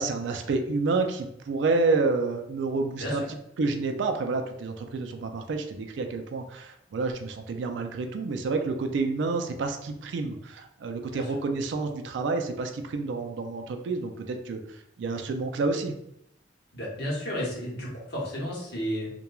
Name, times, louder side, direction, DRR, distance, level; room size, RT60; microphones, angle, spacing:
voice 1, 0.0-3.2 3.6-15.9, right 3 dB, 65° right, 5 dB, 0.3 m, -29 dB
voice 2, 16.7-19.1, equal, 55° left, -5 dB, 1.0 m, -32 dB
3.0 x 2.2 x 2.3 m, 0.77 s
head